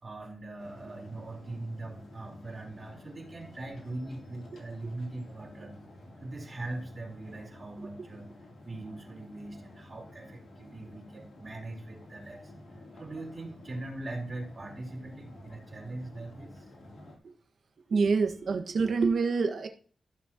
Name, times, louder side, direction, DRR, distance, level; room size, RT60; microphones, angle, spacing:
voice 1, 0.0-5.8 6.2-8.4 8.6-12.5 12.9-16.7, right 2 dB, 40° right, -1 dB, 4.1 m, -41 dB
sound 1, 0.6-17.2, left 1 dB, 75° left, 3.2 m, -51 dB
voice 2, 17.9-19.7, right 4 dB, 70° right, 4 dB, 1.7 m, -26 dB
15.0 x 6.8 x 3.0 m, 0.42 s
cardioid pair, 80°, 0 cm